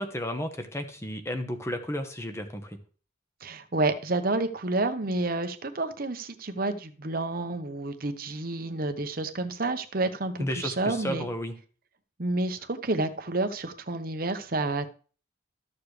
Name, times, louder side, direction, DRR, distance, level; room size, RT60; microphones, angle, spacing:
voice 1, 0.0-2.8 10.4-11.5, equal, 15° left, 7 dB, 1.0 m, -33 dB
voice 2, 3.4-11.3 12.2-14.9, right 2 dB, 50° right, 8 dB, 0.9 m, -29 dB
13.0 x 7.0 x 3.3 m, 0.39 s
head